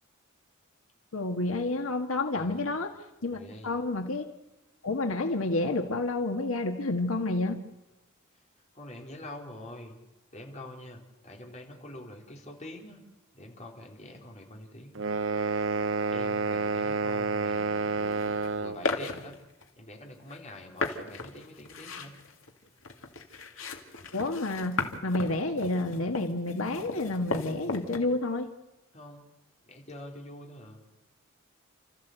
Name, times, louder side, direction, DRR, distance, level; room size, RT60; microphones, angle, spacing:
voice 1, 1.1-2.9 3.2-4.2 4.8-7.6 24.1-28.5, left 2 dB, 90° left, 5 dB, 1.6 m, -29 dB
voice 2, 2.3-2.7 3.3-3.7 8.7-10.0 10.3-13.0 13.3-15.1 16.1-18.2 18.5-19.4 19.8-22.1 28.9-29.2 29.7-30.8, left 1 dB, 35° left, 0 dB, 4.1 m, -45 dB
sound 1, 14.9-18.8, right 4 dB, 65° right, 1.0 m, -29 dB
sound 2, 18.1-18.5 18.8-19.7 20.3-20.4 20.8-28.0, left 3 dB, 70° left, 2.4 m, -36 dB
30.0 x 14.0 x 8.1 m, 0.97 s
head